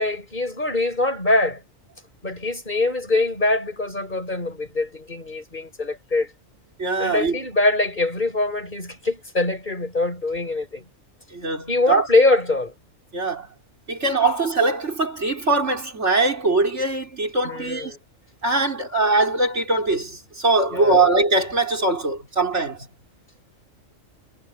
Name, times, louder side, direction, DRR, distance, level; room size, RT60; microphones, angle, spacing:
voice 1, 0.0-1.6 2.2-6.3 7.0-10.8 11.7-12.7 17.4-18.0 20.7-21.1, left 2 dB, 35° left, 6.6 m, -23 dB
voice 2, 6.8-7.4 11.3-12.1 13.1-13.5 13.9-17.9 18.4-22.8, right 3 dB, 60° right, 5.2 m, -22 dB
omnidirectional pair, 1.4 m